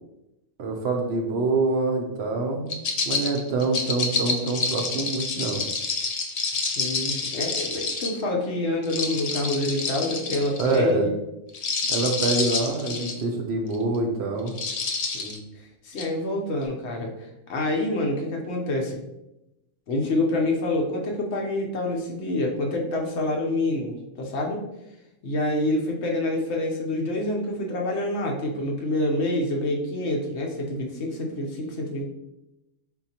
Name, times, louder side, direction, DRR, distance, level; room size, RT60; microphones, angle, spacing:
voice 1, 0.6-5.6 10.6-11.1 11.9-14.5, right 3 dB, 65° right, 2 dB, 0.8 m, -26 dB
sound 1, 2.7-8.2 8.8-10.8 11.5-13.2 13.7-14.0 14.5-15.4 16.0-16.1, left 4 dB, 85° left, 0.3 m, -28 dB
voice 2, 6.5-11.1 15.1-15.4 15.8-19.0 19.9-24.6 25.2-32.0, left 1 dB, 65° left, 0 dB, 1.0 m, -27 dB
4.4 x 3.8 x 2.8 m, 0.92 s
omnidirectional pair, 1.3 m